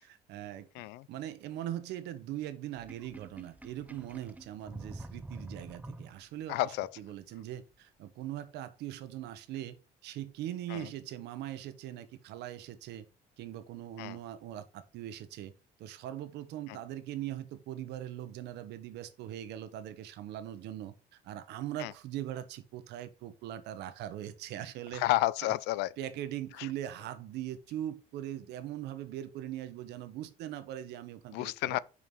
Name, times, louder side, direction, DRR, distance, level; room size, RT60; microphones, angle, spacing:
voice 1, 0.0-0.7 1.1-9.8 10.0-13.1 13.4-15.5 15.8-20.9 21.2-25.0 26.0-31.8, right 12 dB, 80° right, 1.0 m, -41 dB
voice 2, 0.7-1.1 6.5-6.9 10.7-10.9 14.0-14.2 16.7-16.8 21.8-21.9 24.9-25.9 31.3-31.8, left 16 dB, 90° left, 0.4 m, -31 dB
Sink (filling or washing), 2.8-6.5, right 2 dB, 10° right, 0.5 m, -47 dB
5.6 x 4.8 x 6.2 m
cardioid pair, 110°, 17 cm